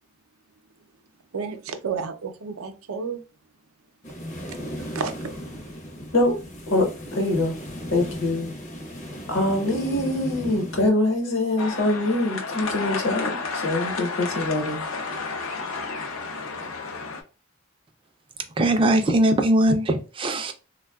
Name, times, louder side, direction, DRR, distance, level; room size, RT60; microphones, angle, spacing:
voice 1, 1.3-3.2 4.8-5.2, right 5 dB, 85° right, 0.5 m, -31 dB
sound 1, 4.0-10.9, equal, 35° left, 0.6 m, -36 dB
voice 2, 6.7-7.5 7.9-8.5 9.3-14.8, left 2 dB, 65° left, 1.0 m, -24 dB
sound 2, 11.6-17.2, left 4 dB, 85° left, 0.6 m, -31 dB
voice 3, 18.6-20.5, right 1 dB, 25° right, 0.4 m, -20 dB
3.4 x 2.2 x 2.2 m
head